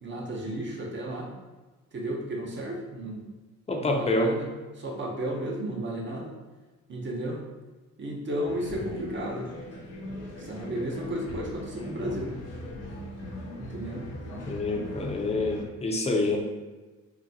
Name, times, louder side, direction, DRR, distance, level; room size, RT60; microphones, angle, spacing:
voice 1, 0.0-1.3 1.9-3.2 3.8-4.5 4.8-6.3 6.9-7.4 8.0-9.5 10.4-12.4 13.6-14.1, right 1 dB, 35° right, 0 dB, 0.7 m, -33 dB
voice 2, 3.7-4.3 14.5-16.4, left 2 dB, 20° left, 1 dB, 0.5 m, -27 dB
sound 1, 8.5-15.6, left 1 dB, 50° left, 0.8 m, -39 dB
3.9 x 2.1 x 2.7 m, 1.2 s
cardioid pair, 100°, 32 cm